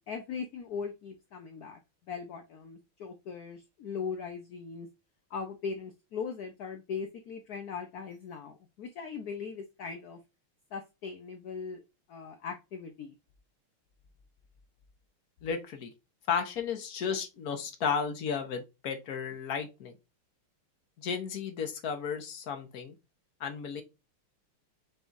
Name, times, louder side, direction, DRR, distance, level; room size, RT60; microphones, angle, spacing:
voice 1, 0.1-1.8 2.1-4.9 5.3-10.2 10.7-11.8 12.1-13.1, left 5 dB, 70° left, 0.9 m, -39 dB
voice 2, 15.4-15.9 16.3-19.9 21.0-22.9 23.4-23.8, left 6 dB, 50° left, 1.2 m, -33 dB
6.0 x 3.4 x 2.6 m
omnidirectional pair, 2.4 m